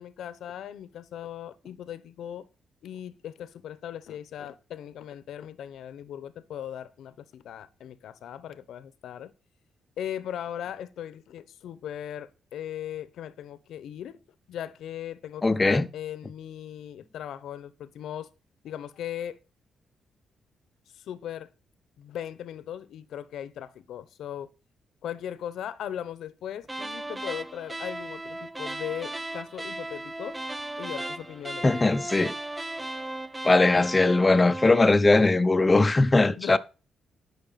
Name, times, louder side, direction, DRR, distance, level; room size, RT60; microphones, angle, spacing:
voice 1, 0.0-2.5 2.8-9.3 10.0-14.2 14.5-18.3 18.6-19.4 21.1-21.5 22.0-24.5 25.0-30.4 30.8-31.7 36.3-36.6, left 10 dB, 80° left, 1.0 m, -38 dB
voice 2, 15.4-15.9 31.6-32.3 33.4-36.6, left 2 dB, 20° left, 0.8 m, -20 dB
sound 1, 26.6-34.9, right 1 dB, 10° right, 0.5 m, -36 dB
12.0 x 6.0 x 5.8 m
cardioid pair, 115°, 0 cm